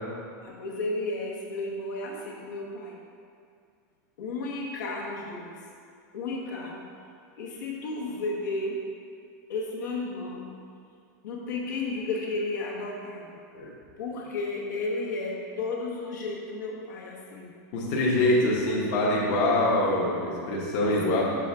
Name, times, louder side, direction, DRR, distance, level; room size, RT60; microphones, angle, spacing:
voice 1, 0.4-3.0 4.2-5.7 6.1-6.8 7.4-8.8 9.5-10.6 11.2-13.4 14.0-17.5 18.2-18.3 18.6-19.1, left 3 dB, 70° left, -3 dB, 1.1 m, -33 dB
voice 2, 17.7-21.2, left 1 dB, 35° left, -5 dB, 1.0 m, -24 dB
6.0 x 4.9 x 3.4 m, 2.3 s
supercardioid pair, 175°, 10 cm